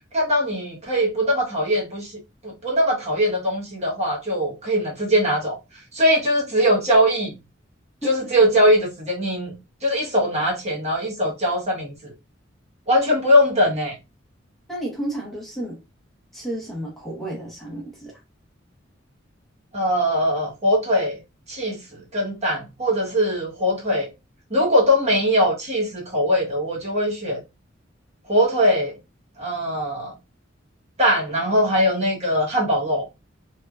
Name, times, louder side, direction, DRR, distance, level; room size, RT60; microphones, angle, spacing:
voice 1, 0.1-2.1 2.4-5.6 5.9-7.3 8.0-9.5 9.8-12.1 12.9-13.9 19.7-21.2 21.5-24.1 24.5-27.4 28.3-28.9 29.4-30.1 31.0-33.0, equal, 35° right, 1.2 m, -21 dB
voice 2, 14.7-15.8 16.3-18.2, right 1 dB, ahead, 1.1 m, -31 dB
3.2 x 2.9 x 2.3 m
head